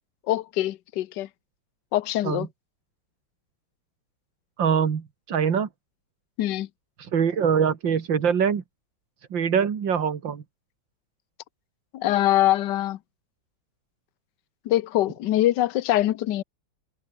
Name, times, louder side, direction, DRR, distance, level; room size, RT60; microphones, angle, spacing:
voice 1, 0.3-1.3 1.9-2.5 6.4-6.7 11.9-13.0 14.6-16.4, left 14 dB, 75° left, 1.4 m, -23 dB
voice 2, 4.6-5.7 7.0-8.6 9.3-10.4, right 7 dB, 85° right, 2.6 m, -23 dB
omnidirectional pair, 2.0 m